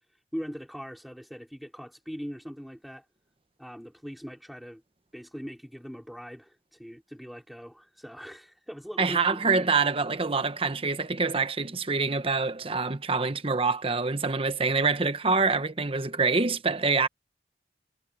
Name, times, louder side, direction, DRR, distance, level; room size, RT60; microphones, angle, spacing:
voice 1, 0.1-3.1 3.6-4.8 5.1-9.5, equal, ahead, 4.7 m, -41 dB
voice 2, 9.0-17.1, right 4 dB, 30° right, 1.0 m, -26 dB
head